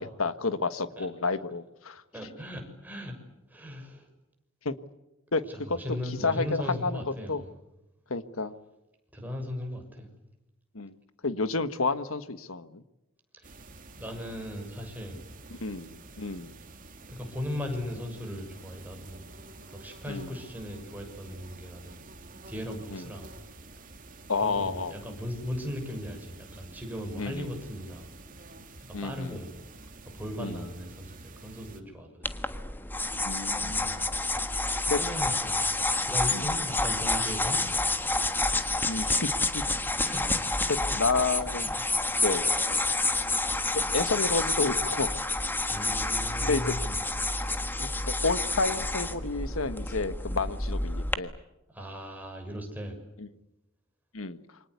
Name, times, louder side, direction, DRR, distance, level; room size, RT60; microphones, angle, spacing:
voice 1, 0.0-2.0 4.6-4.7 5.3-5.8 6.2-7.0 7.3-7.4 8.1-8.5 10.7-11.0 11.2-12.8 15.5-16.6 20.1-20.3 22.9-23.1 24.3-24.9 27.2-27.5 28.9-29.4 30.4-30.7 33.2-34.0 34.9-35.0 36.3-36.5 38.9-39.7 40.7-41.7 42.2-42.4 43.9-45.2 46.4-46.7 47.8-51.3 53.2-53.3 54.1-54.4, left 3 dB, 80° left, 12 dB, 1.5 m, -30 dB
voice 2, 2.1-3.2 3.5-4.1 5.5-7.5 9.1-10.1 13.3-13.5 14.0-15.2 17.1-19.2 19.7-22.0 22.5-23.3 24.4-28.1 28.8-29.6 30.1-32.3 34.7-35.7 36.0-37.7 39.8-40.5 41.6-42.0 45.7-47.0 51.7-52.9, left 1 dB, 10° right, 2 dB, 6.8 m, -38 dB
sound 1, 13.4-31.8, right 2 dB, 40° right, 2.8 m, -49 dB
sound 2, 32.2-51.1, left 2 dB, 10° left, 1.5 m, -29 dB
28.5 x 25.0 x 8.3 m, 0.94 s
head